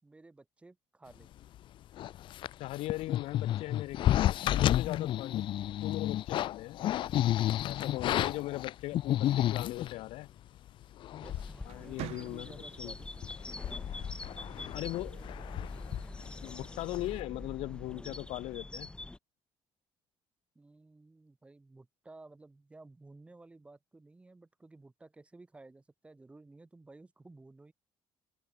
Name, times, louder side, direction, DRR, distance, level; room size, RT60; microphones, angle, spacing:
voice 1, 0.0-1.3 7.7-8.1 11.1-13.1 14.5-15.8 20.5-27.7, right 2 dB, 10° right, 6.4 m, -55 dB
sound 1, 2.0-10.0 10.7-10.8 11.0-11.6 11.9-12.0 12.5-12.8 13.2-16.7 16.9-17.2, left 13 dB, 50° left, 0.7 m, -31 dB
voice 2, 2.6-5.5 5.8-6.8 7.6-10.3 11.7-12.9 14.7-15.2 16.4-18.9, left 17 dB, 80° left, 0.9 m, -39 dB
sound 2, 8.0-9.5 11.0-11.2 11.6-12.8, right 16 dB, 80° right, 2.7 m, -47 dB
sound 3, 11.2-19.2, left 2 dB, 10° left, 4.6 m, -44 dB
cardioid pair, 170°, 10 cm